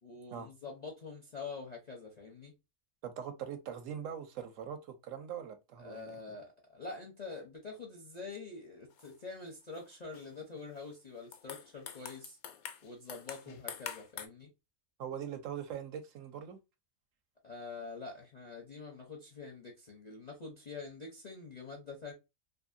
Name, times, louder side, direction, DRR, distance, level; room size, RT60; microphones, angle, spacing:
voice 1, 0.0-2.5 5.8-12.4 12.8-14.5 17.4-22.1, left 4 dB, 50° left, 0.5 m, -46 dB
voice 2, 3.0-6.2 13.5-13.6 15.0-16.6, right 8 dB, 70° right, 0.9 m, -42 dB
sound 1, 8.9-9.3 9.7-10.3 10.7-10.9 11.2-14.3, left 8 dB, 90° left, 1.0 m, -46 dB
2.6 x 2.6 x 2.5 m
omnidirectional pair, 1.5 m